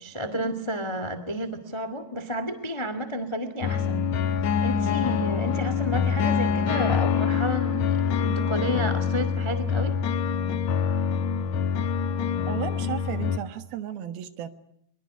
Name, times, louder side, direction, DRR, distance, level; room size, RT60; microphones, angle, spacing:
voice 1, 0.0-4.1 4.6-10.0, equal, 20° left, 12 dB, 0.8 m, -31 dB
sound 1, 3.6-13.4, left 7 dB, 60° left, 2.2 m, -25 dB
voice 2, 12.5-14.5, right 10 dB, 75° right, 11 dB, 3.1 m, -34 dB
23.5 x 23.0 x 9.6 m, 0.72 s
omnidirectional pair, 4.5 m